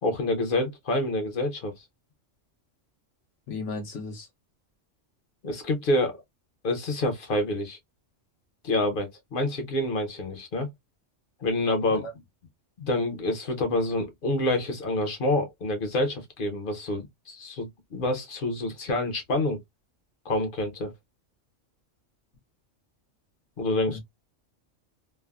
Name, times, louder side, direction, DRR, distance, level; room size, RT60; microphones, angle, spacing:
voice 1, 0.0-1.7 5.4-6.2 6.6-7.8 8.6-10.7 11.4-12.1 12.8-19.6 20.2-20.9 23.6-24.0, left 1 dB, 50° left, 0.8 m, -27 dB
voice 2, 3.5-4.3 11.9-12.1 23.9-24.0, left 3 dB, 75° left, 1.2 m, -35 dB
3.3 x 2.1 x 2.2 m
omnidirectional pair, 1.3 m